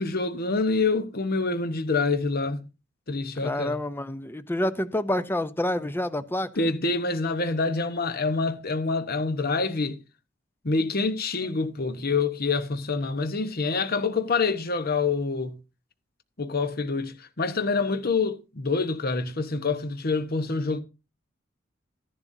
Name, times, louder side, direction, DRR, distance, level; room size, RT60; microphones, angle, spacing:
voice 1, 0.0-2.7 3.1-3.8 6.6-10.0 10.6-15.6 16.4-20.8, left 4 dB, 50° left, 1.0 m, -26 dB
voice 2, 3.4-6.5, left 1 dB, 10° left, 0.5 m, -28 dB
13.5 x 11.0 x 2.7 m
head